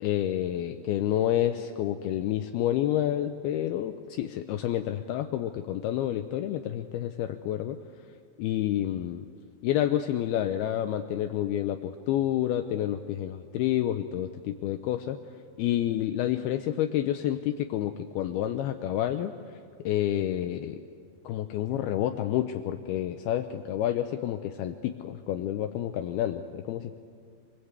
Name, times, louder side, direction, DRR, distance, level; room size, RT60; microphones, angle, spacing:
voice 1, 0.0-7.8 8.4-9.3 9.6-15.2 15.6-19.3 19.8-20.8 21.2-27.0, left 12 dB, 85° left, 7 dB, 2.2 m, -29 dB
27.0 x 21.0 x 8.2 m, 2.1 s
omnidirectional pair, 5.4 m